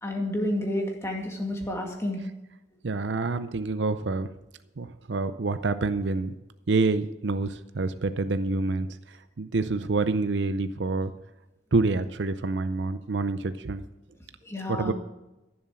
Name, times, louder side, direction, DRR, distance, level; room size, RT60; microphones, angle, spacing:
voice 1, 0.0-2.2 14.5-14.9, left 1 dB, 15° left, 1 dB, 2.1 m, -30 dB
voice 2, 2.8-4.3 4.8-6.3 6.7-8.9 9.4-11.1 11.7-13.8 14.7-14.9, right 3 dB, 70° right, 11 dB, 0.6 m, -27 dB
15.0 x 7.2 x 6.2 m, 0.96 s
head